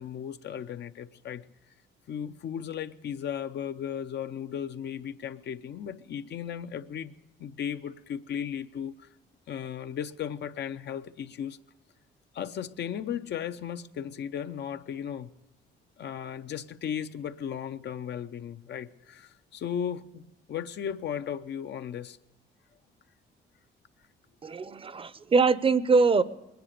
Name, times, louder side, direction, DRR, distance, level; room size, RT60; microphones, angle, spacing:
voice 1, 0.0-1.4 2.1-7.1 7.4-9.1 9.5-11.6 12.3-15.3 16.0-20.2 20.5-22.2, left 8 dB, 60° left, 10 dB, 0.6 m, -36 dB
voice 2, 24.4-26.2, right 4 dB, 25° right, 16 dB, 0.6 m, -23 dB
21.0 x 10.5 x 6.6 m, 1.1 s
cardioid pair, 90°, 20 cm